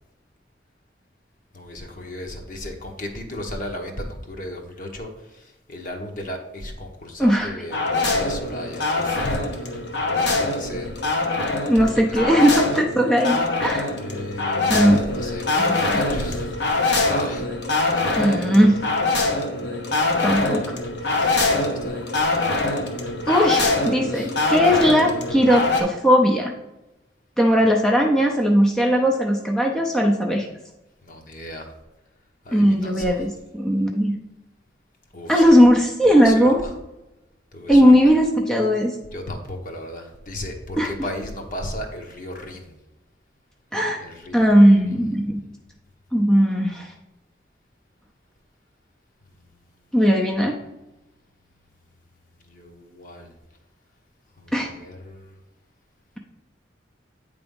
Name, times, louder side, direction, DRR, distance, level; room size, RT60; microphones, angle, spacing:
voice 1, 1.5-10.9 11.8-12.7 13.9-16.6 17.0-17.5 17.9-18.6 21.1-22.6 24.1-24.3 31.0-31.7 32.4-33.2 35.1-35.6 36.0-36.8 37.5-38.1 39.1-42.7 44.0-45.2 52.4-53.3 54.4-55.4, left 1 dB, 45° left, 2 dB, 1.1 m, -35 dB
voice 2, 7.2-7.5 11.7-13.8 14.7-15.0 15.6-15.8 18.2-18.8 20.2-20.6 23.3-26.5 27.4-30.5 32.5-34.2 35.3-36.6 37.7-39.0 40.7-40.9 43.7-44.0 44.3-45.4 46.1-46.9 49.9-50.6 54.5-54.7, equal, 5° left, 0 dB, 0.5 m, -18 dB
sound 1, 7.7-25.8, left 2 dB, 65° left, 1.0 m, -24 dB
8.8 x 3.5 x 5.3 m, 0.98 s
head